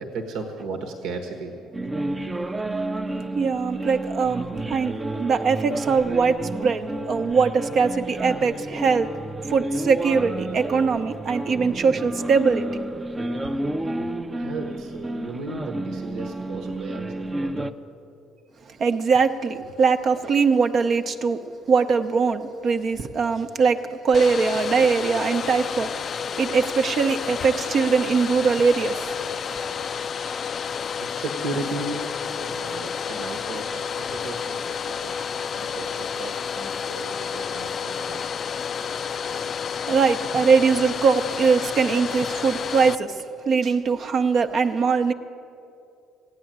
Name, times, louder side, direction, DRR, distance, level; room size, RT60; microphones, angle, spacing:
voice 1, 0.0-1.9 2.3-2.4 7.2-7.3 8.4-8.5 13.7-17.7 30.2-30.5 31.0-32.0 32.3-38.2 38.8-38.9, right 3 dB, 70° right, 4 dB, 1.2 m, -36 dB
sound 1, 1.7-17.7, right 1 dB, 20° right, 0.6 m, -31 dB
voice 2, 3.3-9.1 9.5-12.7 18.8-21.4 21.7-25.9 26.4-29.1 39.9-45.1, right 5 dB, 50° right, 7 dB, 0.8 m, -21 dB
Domestic sounds home sounds, 24.1-43.0, left 7 dB, 50° left, 0.4 m, -30 dB
15.0 x 9.4 x 8.8 m, 2.7 s
hypercardioid pair, 55°, 0 cm